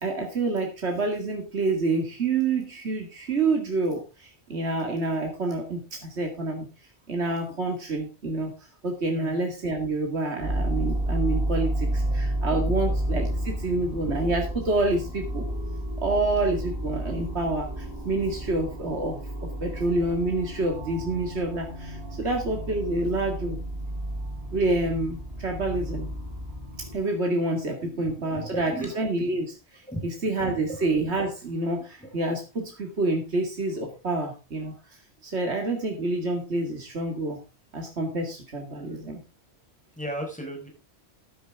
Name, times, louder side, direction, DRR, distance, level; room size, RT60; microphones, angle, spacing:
voice 1, 0.0-6.6 7.1-8.5 8.8-15.5 16.0-23.6 24.5-26.1 26.8-34.7 35.2-37.4 37.7-39.2, right 2 dB, 85° right, 2 dB, 2.5 m, -28 dB
sound 1, 10.4-27.0, right 1 dB, 70° right, 5.6 m, -31 dB
voice 2, 12.5-12.9 14.0-14.1 22.2-22.3 27.8-28.9 29.9-30.1 30.5-30.8 32.0-32.1 38.7-39.0 40.0-40.7, right 1 dB, 5° left, 2 dB, 5.1 m, -37 dB
14.0 x 10.5 x 3.6 m, 0.27 s
omnidirectional pair, 1.1 m